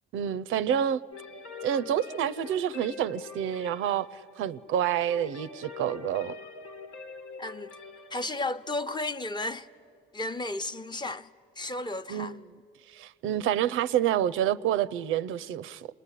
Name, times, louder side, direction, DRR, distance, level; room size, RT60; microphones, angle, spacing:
voice 1, 0.1-1.0 1.6-6.3 12.1-12.4 12.9-15.9, right 10 dB, 85° right, 0.6 m, -28 dB
sound 1, 1.1-10.8, left 4 dB, 85° left, 1.5 m, -45 dB
voice 2, 7.4-7.8 8.1-9.7 10.1-11.3 11.6-12.4, left 2 dB, 20° left, 0.8 m, -33 dB
26.5 x 20.0 x 9.9 m
cardioid pair, 90°, 20 cm